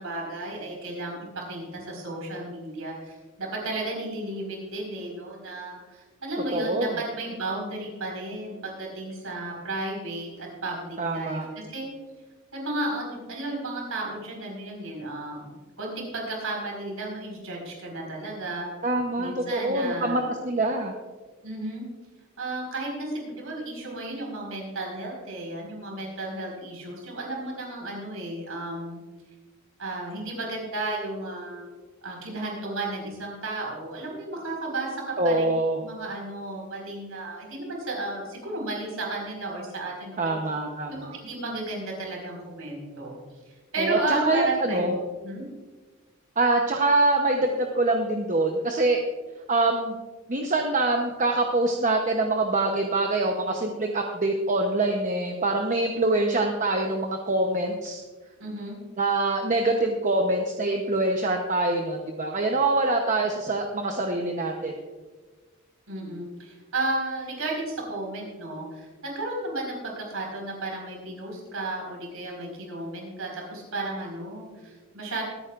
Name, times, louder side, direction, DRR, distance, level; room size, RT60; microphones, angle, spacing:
voice 1, 0.0-11.9 12.5-18.7 19.2-20.2 21.4-21.8 22.4-29.0 29.8-31.7 32.0-35.5 35.8-40.4 40.9-43.2 43.7-45.0 45.2-45.4 58.4-58.8 65.9-75.2, right 2 dB, 85° right, -1 dB, 4.6 m, -33 dB
voice 2, 6.5-7.0 11.0-11.5 18.8-20.9 35.2-35.8 40.2-41.1 43.8-44.9 46.4-49.0 49.5-50.0 50.3-58.0 59.0-64.7, right 2 dB, 35° right, 2 dB, 0.9 m, -25 dB
24.0 x 9.2 x 2.5 m, 1.3 s
head